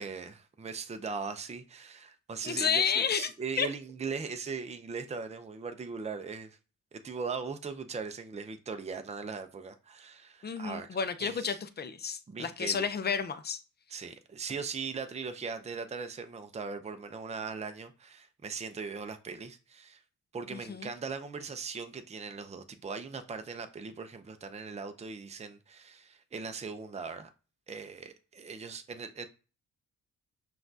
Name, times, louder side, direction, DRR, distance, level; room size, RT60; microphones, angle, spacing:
voice 1, 0.0-6.6 6.9-10.9 11.2-11.6 12.3-12.9 13.9-20.0 20.3-27.3 27.7-29.3, right 5 dB, 20° right, 0.5 m, -39 dB
voice 2, 2.4-3.3 3.6-3.7 10.4-13.6 20.5-20.9, left 6 dB, 30° left, 0.5 m, -31 dB
5.7 x 2.4 x 2.7 m
cardioid pair, 80°, 36 cm